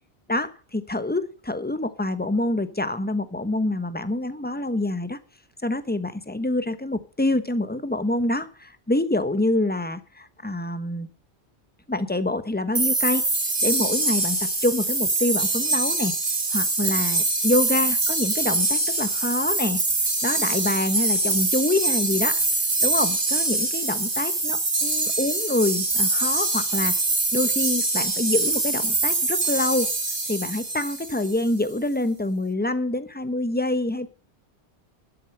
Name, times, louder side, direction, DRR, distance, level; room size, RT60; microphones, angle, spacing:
voice 1, 0.3-5.2 5.6-11.1 11.9-13.3 13.6-16.1 16.5-19.8 20.2-22.4 22.8-27.0 27.3-29.9 30.3-34.1, left 2 dB, 10° left, 11 dB, 1.0 m, -26 dB
sound 1, 12.7-31.4, right 2 dB, 60° right, 2.7 m, -24 dB
12.5 x 8.2 x 6.6 m, 0.40 s
omnidirectional pair, 1.1 m